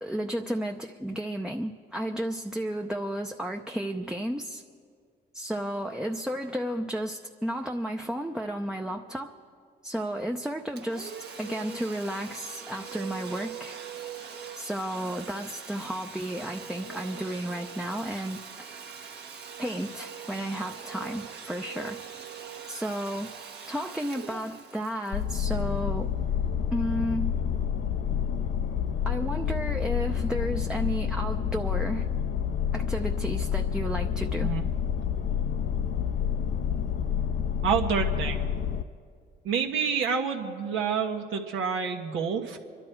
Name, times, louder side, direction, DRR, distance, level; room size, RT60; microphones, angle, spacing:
voice 1, 0.0-4.6 5.3-9.3 9.8-13.8 14.6-18.4 19.6-22.0 22.7-23.3 23.7-26.1 26.7-27.4 29.1-32.1 32.7-34.5, equal, 5° right, 2 dB, 0.6 m, -33 dB
Domestic sounds home sounds, 10.8-26.2, right 6 dB, 55° right, 1.3 m, -42 dB
sound 1, 25.1-38.8, left 8 dB, 60° left, 0.5 m, -28 dB
voice 2, 37.6-38.5 39.4-42.6, right 6 dB, 90° right, 2 dB, 1.4 m, -28 dB
25.5 x 11.5 x 4.6 m, 2.1 s
cardioid pair, 90°, 20 cm